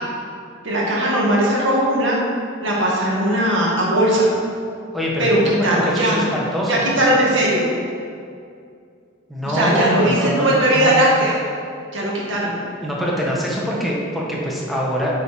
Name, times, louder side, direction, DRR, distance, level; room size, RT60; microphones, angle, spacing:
voice 1, 0.6-2.2 2.6-4.3 5.2-6.2 6.7-7.6 9.5-11.4 11.9-12.6, right 1 dB, 65° right, -4 dB, 2.0 m, -18 dB
voice 2, 4.9-7.2 9.3-10.9 12.8-15.1, equal, ahead, -5 dB, 1.4 m, -24 dB
8.4 x 4.4 x 5.9 m, 2.3 s
head